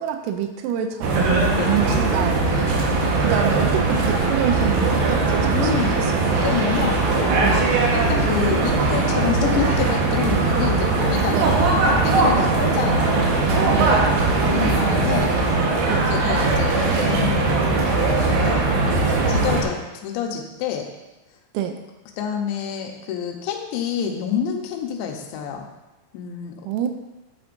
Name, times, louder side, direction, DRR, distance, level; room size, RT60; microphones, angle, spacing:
voice 1, 0.0-6.2 7.4-7.7 11.3-11.5 12.4-12.6 13.7-14.0 15.9-16.1 21.5-21.8 26.6-26.9, right 9 dB, 85° right, 6 dB, 3.1 m, -27 dB
sound 1, 1.0-19.6, right 3 dB, 65° right, 2.4 m, -20 dB
voice 2, 5.5-7.0 7.3-13.4 13.9-15.3 15.7-20.9 22.2-25.6 26.1-26.5, left 7 dB, 75° left, 2 dB, 2.9 m, -28 dB
11.0 x 9.4 x 2.7 m, 1.1 s
omnidirectional pair, 6.0 m